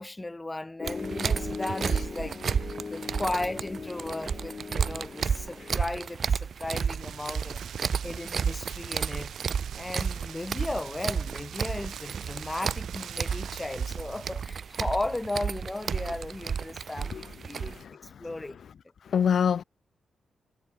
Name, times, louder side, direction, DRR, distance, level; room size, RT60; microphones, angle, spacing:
voice 1, 0.0-7.6 8.0-9.3 9.7-18.6, left 2 dB, 20° left, 0.8 m, -36 dB
Piano, 0.8-5.8, left 4 dB, 45° left, 2.1 m, -39 dB
sound 1, 0.8-17.8, right 6 dB, 60° right, 0.6 m, -32 dB
Rain, 6.7-14.4, right 10 dB, 80° right, 1.5 m, -44 dB
voice 2, 17.1-18.3 19.1-19.6, left 7 dB, 70° left, 0.6 m, -28 dB
supercardioid pair, 50°, 0 cm